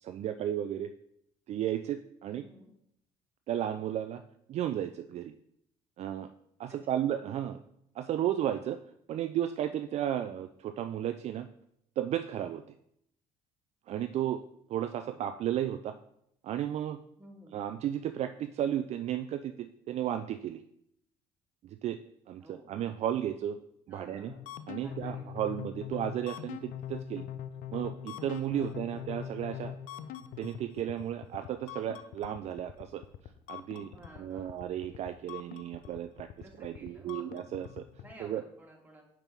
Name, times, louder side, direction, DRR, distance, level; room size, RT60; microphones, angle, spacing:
voice 1, 0.0-0.9 1.5-2.4 3.5-4.2 4.5-5.3 6.0-6.3 6.6-7.6 8.0-8.8 9.1-11.5 12.0-12.6 13.9-14.4 14.7-15.9 16.4-17.0 17.5-20.6 21.6-22.0 22.3-23.6 23.9-24.3 24.7-27.2 27.7-29.7 30.4-33.0 33.5-33.9 34.2-36.3 36.6-37.8 38.2-38.4, right 11 dB, 50° right, 9 dB, 0.4 m, -34 dB
voice 2, 2.3-2.7 6.7-7.0 15.0-15.2 17.2-17.6 22.4-22.7 23.9-24.4 24.8-25.5 28.6-29.0 33.7-34.7 36.4-37.4 38.0-39.0, right 2 dB, 10° right, -1 dB, 2.1 m, -53 dB
sound 1, 24.3-38.1, left 10 dB, 70° left, 0.5 m, -43 dB
5.9 x 5.2 x 4.6 m, 0.73 s
supercardioid pair, 85°, 14 cm